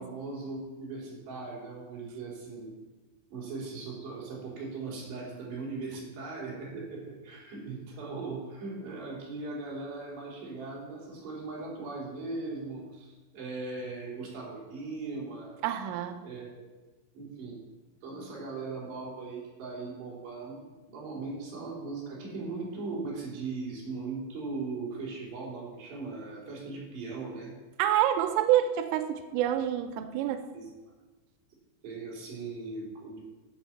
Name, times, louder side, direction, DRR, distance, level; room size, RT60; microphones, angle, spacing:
voice 1, 0.0-2.7 3.3-15.6 16.2-16.7 17.1-17.6 18.0-27.5 30.5-30.7 31.8-33.2, right 3 dB, 60° right, -4 dB, 5.3 m, -39 dB
voice 2, 15.6-16.2 27.8-30.4, right 11 dB, 90° right, 9 dB, 3.2 m, -27 dB
12.0 x 8.1 x 5.8 m, 1.2 s
omnidirectional pair, 5.7 m